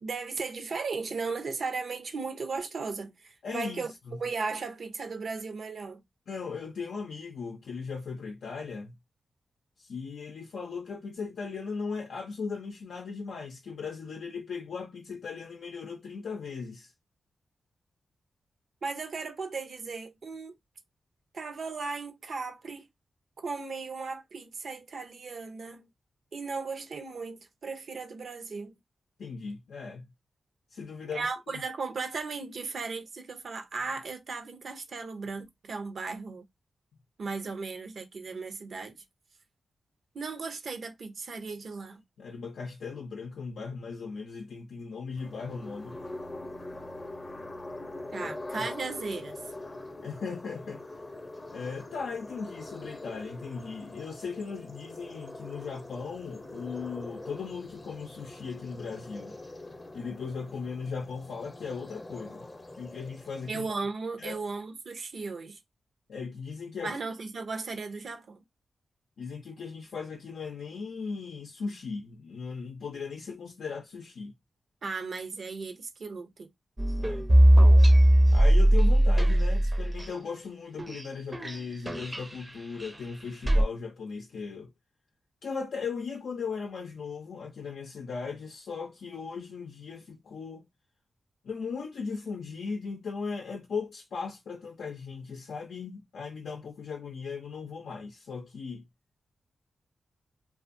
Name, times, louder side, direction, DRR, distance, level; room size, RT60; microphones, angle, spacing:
voice 1, 0.0-3.9 4.2-6.0 18.8-20.5 21.3-22.8 23.4-25.9 26.3-28.8 31.1-36.4 37.2-39.0 40.1-42.0 48.1-49.4 63.5-65.6 66.8-68.4 74.8-76.5, right 4 dB, 65° right, 0.7 m, -36 dB
voice 2, 3.4-4.2 6.3-8.9 9.8-16.9 29.2-30.1 30.7-31.3 42.2-46.0 48.2-48.7 50.0-50.8 51.5-59.4 59.9-62.5 62.8-63.7 64.2-64.4 66.1-67.0 69.2-74.3 77.0-77.3 78.3-84.7 85.4-90.7 91.4-98.9, left 5 dB, 85° left, 0.5 m, -38 dB
sound 1, 45.2-63.5, left 2 dB, 30° left, 0.6 m, -43 dB
sound 2, 76.8-80.1 80.8-81.1 81.3-81.6 81.9-82.2 82.8-82.9 83.5-83.6, right 1 dB, 25° right, 0.5 m, -20 dB
2.5 x 2.3 x 2.5 m
cardioid pair, 70°, 0 cm